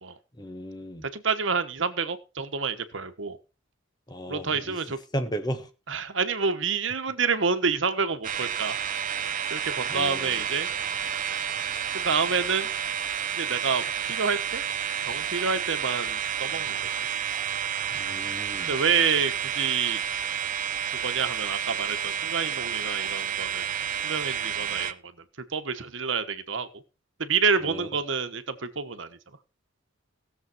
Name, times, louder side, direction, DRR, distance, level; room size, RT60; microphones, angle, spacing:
voice 1, 0.4-1.0 4.1-4.8 5.1-5.7 9.9-10.3 17.9-18.7 27.6-27.9, equal, 20° left, 1.4 m, -34 dB
voice 2, 1.0-3.4 4.3-5.0 5.9-8.8 9.5-10.7 11.9-12.7 13.4-14.6 15.0-16.9 18.7-20.0 20.9-23.7 24.0-25.0 25.5-26.8 27.2-29.2, right 5 dB, 70° right, 1.2 m, -28 dB
sound 1, 8.2-24.9, right 8 dB, 40° right, 0.7 m, -30 dB
17.0 x 7.4 x 4.4 m
head